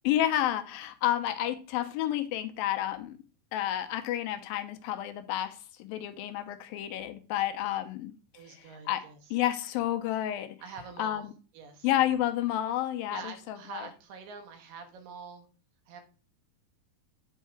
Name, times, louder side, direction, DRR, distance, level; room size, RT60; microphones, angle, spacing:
voice 1, 0.0-3.2 3.5-8.1 8.5-9.0 9.3-10.6 11.0-11.3 11.8-13.9, left 12 dB, 80° left, 2.4 m, -30 dB
voice 2, 8.3-9.4 10.6-11.3 11.5-11.9 13.1-15.5 15.9-16.0, right 6 dB, 70° right, 2.8 m, -45 dB
9.2 x 4.5 x 4.6 m
omnidirectional pair, 4.2 m